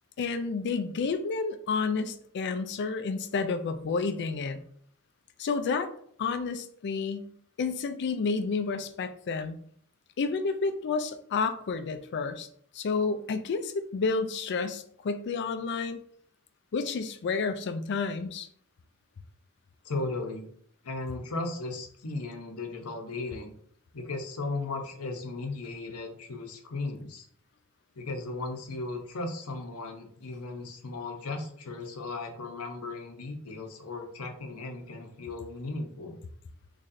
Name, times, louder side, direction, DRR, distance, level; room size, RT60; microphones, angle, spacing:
voice 1, 0.2-4.6 5.4-5.9 6.2-7.3 7.6-9.6 10.2-12.5 12.7-16.0 16.7-18.5, left 4 dB, 50° left, 9 dB, 0.4 m, -30 dB
voice 2, 19.8-20.5 20.8-23.5 23.9-27.3 28.0-36.2, left 3 dB, 75° left, 4 dB, 0.7 m, -36 dB
4.0 x 3.1 x 2.6 m, 0.62 s
head